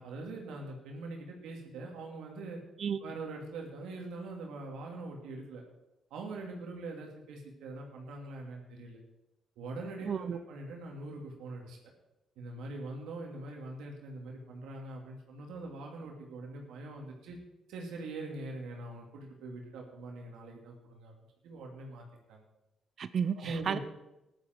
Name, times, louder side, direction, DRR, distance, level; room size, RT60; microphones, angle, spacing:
voice 1, 0.0-2.6 3.0-5.6 6.1-9.0 9.6-11.8 12.4-17.4 17.7-21.1 21.4-22.4 23.4-23.8, right 2 dB, 85° right, 0 dB, 2.8 m, -43 dB
voice 2, 10.0-10.4 23.0-23.8, right 7 dB, 55° right, 13 dB, 0.6 m, -32 dB
14.5 x 11.0 x 4.6 m, 0.95 s
cardioid pair, 90°, 0 cm